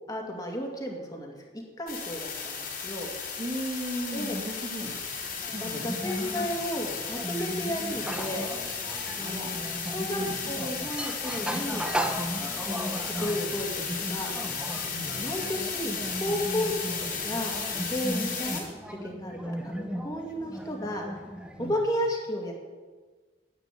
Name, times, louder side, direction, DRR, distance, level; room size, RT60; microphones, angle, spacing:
voice 1, 0.1-1.4 1.8-3.1 4.1-4.4 5.6-8.5 9.2-10.2 10.5-11.8 12.4-14.4 14.8-15.9 16.2-17.6 17.9-21.0 21.6-22.5, equal, 20° left, 0 dB, 2.3 m, -33 dB
sound 1, 1.9-18.6, left 5 dB, 55° left, 4.1 m, -34 dB
voice 2, 3.4-5.0 5.5-5.9 9.2-9.6 10.1-10.3 14.9-15.2 21.6-21.8, equal, 30° right, 1 dB, 1.9 m, -36 dB
sound 2, 5.1-21.7, equal, 5° right, 0.9 m, -37 dB
10.5 x 8.9 x 9.9 m, 1.4 s
head